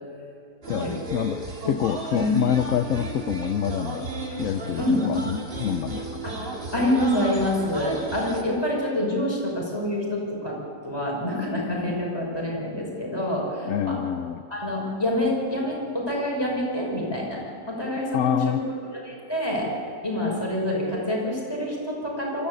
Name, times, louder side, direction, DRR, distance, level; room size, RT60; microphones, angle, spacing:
sound 1, 0.6-8.4, right 2 dB, 35° right, 2.3 m, -34 dB
voice 1, 0.7-4.1 4.4-4.8 5.1-6.2 13.6-14.4 18.1-18.6, left 9 dB, 65° left, 10 dB, 0.9 m, -27 dB
voice 2, 6.2-10.6 10.8-14.0 14.5-17.4 17.7-19.7 20.0-22.5, left 1 dB, 15° left, -3 dB, 6.1 m, -27 dB
23.5 x 15.5 x 8.2 m, 2.6 s
omnidirectional pair, 1.7 m